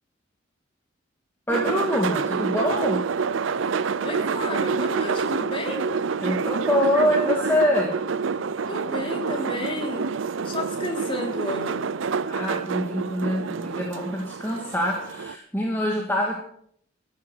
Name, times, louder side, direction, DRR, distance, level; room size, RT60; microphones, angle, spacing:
voice 1, 1.5-3.0 6.2-8.0 12.3-16.4, left 1 dB, 10° left, -1 dB, 1.8 m, -25 dB
sound 1, 1.5-15.3, right 5 dB, 80° right, 0.6 m, -27 dB
voice 2, 4.0-5.9 8.7-10.1 10.4-11.9, left 1 dB, 25° left, 1 dB, 3.4 m, -32 dB
13.5 x 10.5 x 6.1 m, 0.66 s
head